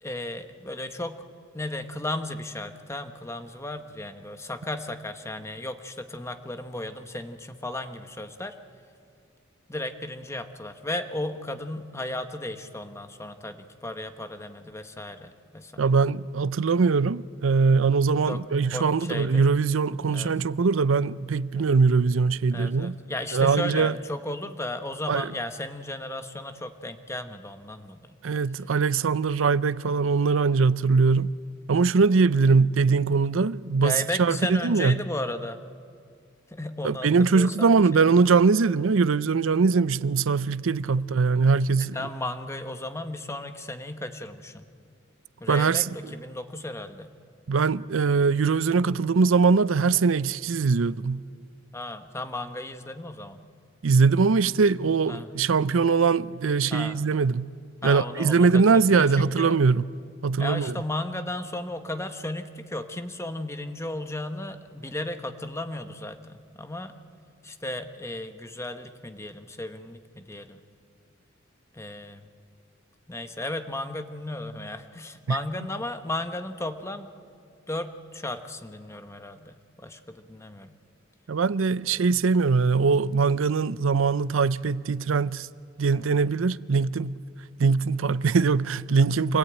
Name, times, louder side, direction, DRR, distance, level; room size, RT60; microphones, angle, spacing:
voice 1, 0.0-1.2 1.5-8.6 9.7-16.0 18.3-18.4 18.7-19.5 20.1-20.3 21.5-21.7 22.5-28.2 33.8-35.6 36.5-38.2 41.9-44.7 45.4-47.1 51.7-53.4 55.1-55.3 56.7-57.0 57.8-59.6 60.4-66.9 67.4-70.6 71.7-72.3 73.1-77.1 77.7-80.7 81.9-82.1 85.9-86.1, left 1 dB, 15° left, 1.1 m, -35 dB
voice 2, 15.8-23.0 23.3-23.9 25.1-25.3 28.2-31.4 31.7-35.0 36.8-42.0 45.5-45.9 47.5-51.2 53.8-57.5 57.8-59.8 60.2-60.8 75.3-75.4 81.3-85.5 85.8-87.1 87.6-89.4, right 4 dB, 90° right, 0.5 m, -22 dB
26.0 x 17.5 x 9.0 m
head